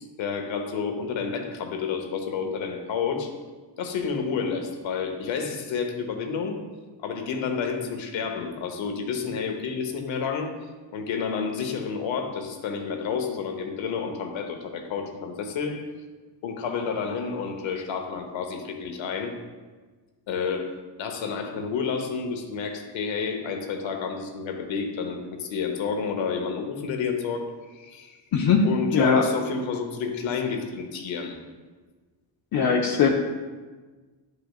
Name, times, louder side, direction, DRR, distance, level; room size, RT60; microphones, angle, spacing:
voice 1, 0.0-3.3 3.8-6.6 7.0-10.5 10.9-15.8 16.4-19.3 20.3-20.7 21.0-28.2 28.6-31.3, left 5 dB, 85° left, 4 dB, 1.0 m, -30 dB
voice 2, 28.3-29.3 32.5-33.1, left 5 dB, 55° left, 0 dB, 0.6 m, -20 dB
10.5 x 4.9 x 2.4 m, 1.4 s
cardioid pair, 110°, 45 cm